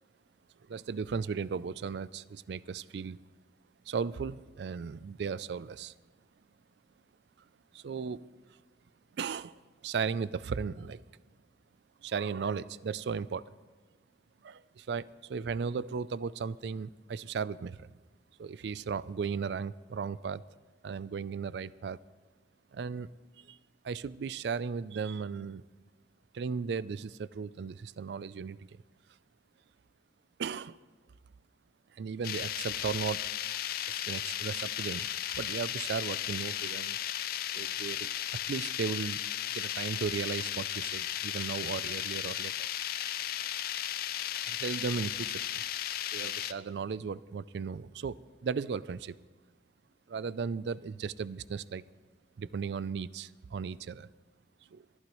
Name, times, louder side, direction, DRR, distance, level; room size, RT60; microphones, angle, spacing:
voice 1, 0.7-3.2 3.9-5.9 7.7-8.3 9.1-11.0 12.0-13.5 14.4-17.9 18.4-20.4 20.8-22.0 22.7-23.1 23.4-23.6 23.8-25.6 26.3-28.7 30.4-30.8 32.0-33.3 33.9-35.1 35.4-37.0 37.5-38.1 38.5-39.2 39.5-42.7 44.5-45.6 46.1-49.2 50.1-51.8 52.4-54.1 54.7-54.9, right 5 dB, 65° right, 19 dB, 0.4 m, -36 dB
sound 1, 32.2-46.5, left 11 dB, 55° left, 0.5 m, -35 dB
23.5 x 11.5 x 3.1 m, 1.3 s
head